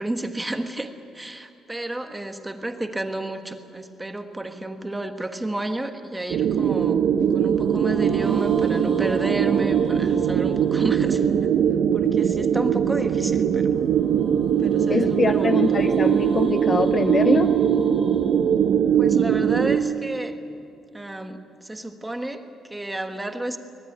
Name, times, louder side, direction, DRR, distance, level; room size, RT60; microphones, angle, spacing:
voice 1, 0.0-11.2 11.9-13.7 14.6-15.7 19.0-20.4 20.9-23.6, right 1 dB, 10° right, 6 dB, 1.4 m, -32 dB
sound 1, 2.8-5.2 7.4-11.6 13.7-19.9, right 4 dB, 35° right, 2.4 m, -40 dB
sound 2, 6.3-19.8, right 8 dB, 60° right, 1.0 m, -21 dB
voice 2, 14.9-17.5, left 4 dB, 25° left, 9 dB, 0.6 m, -23 dB
24.5 x 19.5 x 9.4 m, 2.5 s
cardioid pair, 160°, 0 cm